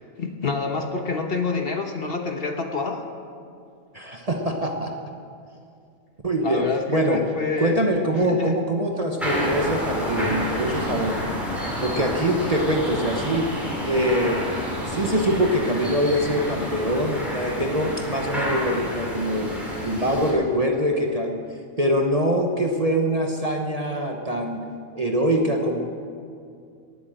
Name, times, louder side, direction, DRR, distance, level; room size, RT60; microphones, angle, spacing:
voice 1, 0.2-3.0 6.4-7.8 8.2-8.5 14.4-14.5, left 4 dB, 45° left, 4 dB, 1.3 m, -27 dB
voice 2, 3.9-4.9 6.2-7.2 7.6-11.3 11.8-13.5 13.8-14.4 14.9-19.5 19.8-21.4 21.8-24.6 24.9-25.8, equal, 30° right, 2 dB, 1.0 m, -24 dB
sound 1, 9.2-20.3, equal, ahead, 3.8 m, -29 dB
18.0 x 8.5 x 7.7 m, 2.4 s
omnidirectional pair, 1.4 m